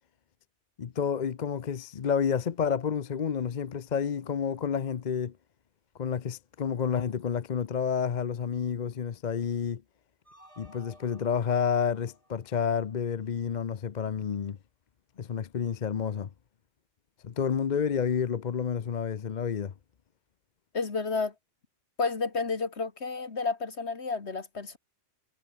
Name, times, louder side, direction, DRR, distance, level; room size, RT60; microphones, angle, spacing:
voice 1, 0.8-5.3 6.0-9.8 10.6-14.6 15.2-16.3 17.2-19.7, left 7 dB, 45° left, 0.8 m, -30 dB
sound 1, 10.2-13.4, right 1 dB, 25° right, 7.2 m, -57 dB
voice 2, 20.7-21.3 22.0-24.8, left 4 dB, 60° left, 2.3 m, -31 dB
omnidirectional pair, 1.2 m